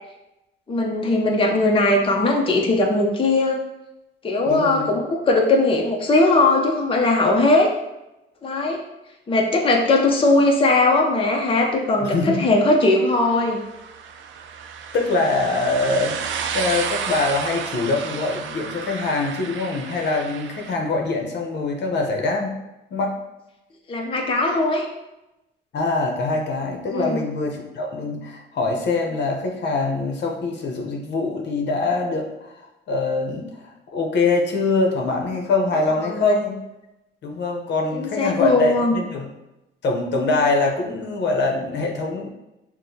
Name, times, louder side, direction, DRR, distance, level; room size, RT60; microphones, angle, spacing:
voice 1, 0.7-3.6 4.2-7.7 8.4-8.8 9.3-13.6 23.9-24.9 26.9-27.2 36.0-36.3 37.9-39.0, left 2 dB, 25° left, 0 dB, 0.6 m, -19 dB
voice 2, 4.5-4.9 12.0-12.5 14.9-16.2 16.5-22.6 22.9-23.1 25.7-32.5 32.9-36.6 37.2-39.3 39.8-42.3, left 3 dB, 60° left, 1 dB, 0.8 m, -23 dB
sound 1, 12.6-20.8, right 7 dB, 75° right, 0.4 m, -32 dB
6.0 x 2.1 x 2.7 m, 0.95 s
cardioid pair, 90°, 20 cm